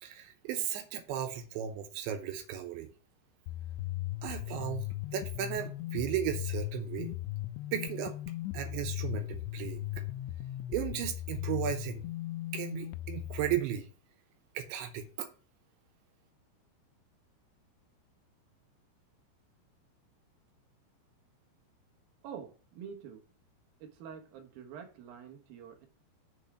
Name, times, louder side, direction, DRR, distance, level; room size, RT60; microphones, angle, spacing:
voice 1, 0.0-2.9 4.2-7.1 7.7-8.2 8.5-10.0 10.7-12.0 12.5-13.9 14.5-15.3, right 10 dB, 85° right, 3.2 m, -35 dB
sound 1, 3.5-13.6, left 15 dB, 90° left, 3.0 m, -38 dB
voice 2, 22.2-23.2 23.8-25.9, right 7 dB, 65° right, 2.5 m, -46 dB
7.0 x 5.5 x 4.9 m
omnidirectional pair, 5.2 m